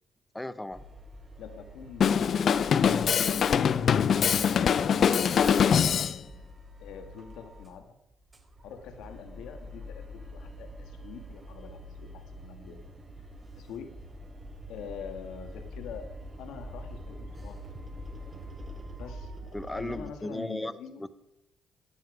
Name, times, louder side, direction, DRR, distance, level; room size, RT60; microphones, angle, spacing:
voice 1, 0.3-0.8 19.5-20.7 21.0-21.1, left 1 dB, 10° left, 14 dB, 1.0 m, -35 dB
sound 1, 0.7-7.8 8.1-20.1, equal, 30° right, 3.9 m, -45 dB
voice 2, 1.4-3.9 4.6-6.1 6.8-8.0 8.6-12.8 13.5-14.0 14.7-16.1 16.4-17.6 19.0-21.0, left 6 dB, 90° left, 7 dB, 1.8 m, -45 dB
Drum kit, 2.0-6.2, left 7 dB, 55° left, 0.5 m, -23 dB
18.0 x 12.5 x 5.0 m, 0.83 s
cardioid pair, 90°, 0 cm